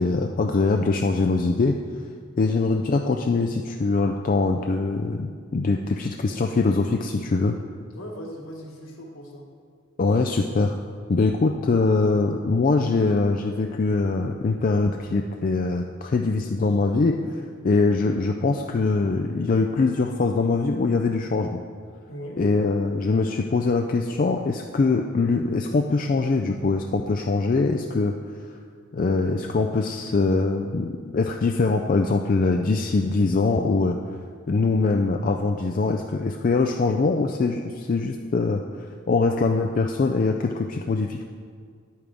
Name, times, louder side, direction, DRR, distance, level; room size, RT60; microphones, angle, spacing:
voice 1, 0.0-1.8 2.4-7.6 10.0-10.7 11.1-21.6 22.4-28.1 28.9-34.0 34.5-38.6 39.1-41.2, left 3 dB, 40° left, 3 dB, 0.3 m, -23 dB
voice 2, 7.9-9.5 22.1-22.5, equal, 75° left, 0 dB, 1.6 m, -39 dB
9.7 x 8.7 x 3.5 m, 2.1 s
head